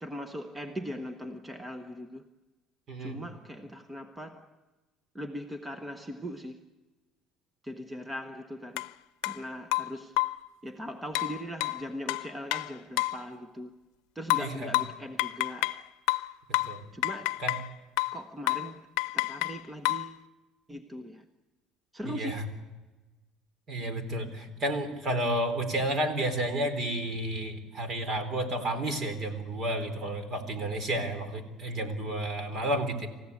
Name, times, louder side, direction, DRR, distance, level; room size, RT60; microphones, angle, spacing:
voice 1, 0.0-2.3 3.0-4.5 5.1-6.6 7.6-8.9 9.2-10.2 10.6-13.7 14.1-15.9 16.9-17.5 18.1-18.9 19.1-20.2 20.7-21.3 21.9-22.5, equal, 10° right, 1.0 m, -40 dB
voice 2, 2.9-3.2 14.4-14.7 16.7-16.8 17.4-17.5 22.0-22.4 23.7-33.1, right 1 dB, 40° right, 4.0 m, -31 dB
sound 1, 8.8-8.9 9.2-9.4 9.7-10.5 11.2-13.2 14.3-15.8 16.1-17.7 18.0-18.2 18.5-18.7 19.0-20.1, left 21 dB, 85° left, 0.6 m, -29 dB
28.0 x 15.5 x 8.4 m
cardioid pair, 125°, 0 cm